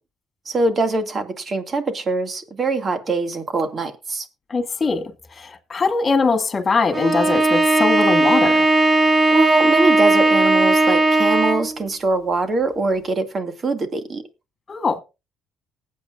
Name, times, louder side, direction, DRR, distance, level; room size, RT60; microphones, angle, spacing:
voice 1, 0.5-4.3 9.3-14.2, right 3 dB, 40° right, 2.3 m, -22 dB
voice 2, 4.5-8.7 14.7-15.0, left 4 dB, 35° left, 2.3 m, -21 dB
Bowed string instrument, 6.9-11.8, right 2 dB, 20° right, 1.6 m, -17 dB
19.5 x 8.6 x 2.6 m
cardioid pair, 85°, 0 cm